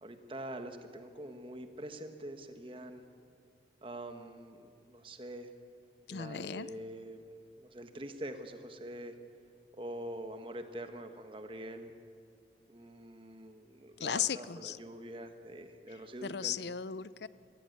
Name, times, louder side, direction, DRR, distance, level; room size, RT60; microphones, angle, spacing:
voice 1, 0.0-3.0 3.8-5.5 6.1-9.1 9.7-11.9 12.7-16.6, right 1 dB, 30° right, 7 dB, 1.5 m, -45 dB
voice 2, 6.1-6.7 14.0-14.8 16.2-17.3, left 8 dB, 70° left, 17 dB, 0.5 m, -36 dB
23.0 x 16.0 x 9.4 m, 2.2 s
head